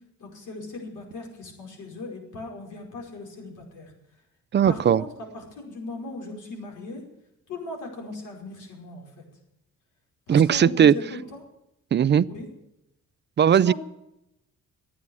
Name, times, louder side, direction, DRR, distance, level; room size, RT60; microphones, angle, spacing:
voice 1, 0.2-3.9 4.6-5.1 5.3-7.0 7.5-9.0 10.3-11.4 12.3-12.5 13.5-13.7, left 2 dB, 80° left, 1 dB, 5.2 m, -38 dB
voice 2, 4.5-5.0 10.3-11.0 11.9-12.3 13.4-13.7, right 8 dB, 35° right, 16 dB, 0.5 m, -18 dB
13.0 x 9.5 x 8.4 m, 0.84 s
cardioid pair, 90°, 30 cm